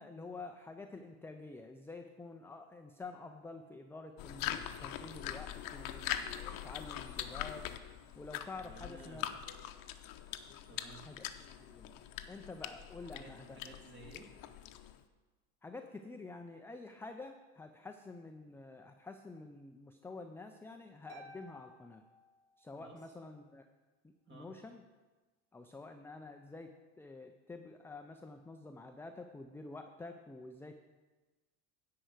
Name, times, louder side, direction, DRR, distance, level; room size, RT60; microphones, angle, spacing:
voice 1, 0.0-7.9 8.2-9.3 11.0-11.3 11.6-12.0 12.3-13.6 15.6-22.0 22.6-23.7 24.0-24.8 25.5-30.7, left 3 dB, 5° left, 5 dB, 0.4 m, -49 dB
sound 1, 4.2-15.0, left 11 dB, 50° left, 0.8 m, -43 dB
voice 2, 8.6-9.4 10.7-11.1 13.0-14.3 22.7-23.0 24.3-24.5, right 2 dB, 25° right, 0 dB, 2.7 m, -54 dB
Harp, 21.1-23.0, right 1 dB, 70° right, 2.3 m, -57 dB
9.9 x 4.8 x 7.8 m, 1.2 s
hypercardioid pair, 75°, 44 cm